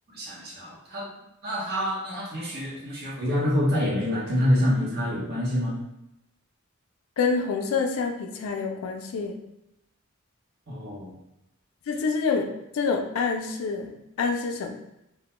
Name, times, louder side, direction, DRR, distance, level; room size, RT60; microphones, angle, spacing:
voice 1, 0.1-1.1 1.4-5.8 10.7-11.1, equal, 50° right, -5 dB, 0.8 m, -26 dB
voice 2, 7.2-9.4 11.9-12.5 12.7-14.7, left 5 dB, 80° left, 4 dB, 0.4 m, -27 dB
2.1 x 2.1 x 2.9 m, 0.87 s
head